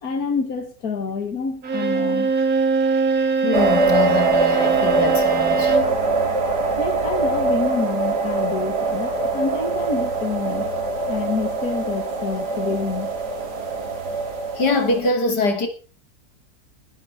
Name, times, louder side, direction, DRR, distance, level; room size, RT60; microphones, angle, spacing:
voice 1, 0.0-2.3 6.8-10.7 11.1-13.1, left 4 dB, 60° left, 2.5 m, -27 dB
Bowed string instrument, 1.6-6.0, right 5 dB, 60° right, 2.2 m, -22 dB
voice 2, 3.4-5.8 14.6-15.7, left 3 dB, 85° left, 3.4 m, -23 dB
sound 1, 3.5-15.1, right 3 dB, 75° right, 3.3 m, -23 dB
19.5 x 12.0 x 4.4 m
omnidirectional pair, 1.7 m